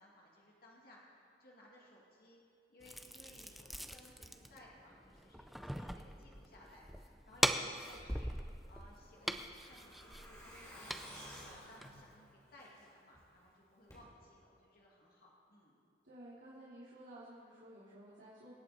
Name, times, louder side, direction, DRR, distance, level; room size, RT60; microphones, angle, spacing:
voice 1, 0.0-2.4 2.7-15.7, left 1 dB, 55° left, -3 dB, 2.4 m, -61 dB
sound 1, 2.8-12.1, equal, ahead, 0.5 m, -41 dB
Truck, 8.5-13.2 13.5-13.6 13.9-14.0, equal, 15° left, 3.7 m, -54 dB
voice 2, 16.0-18.5, right 1 dB, 75° right, -10 dB, 2.8 m, -54 dB
25.0 x 8.5 x 4.2 m, 2.4 s
head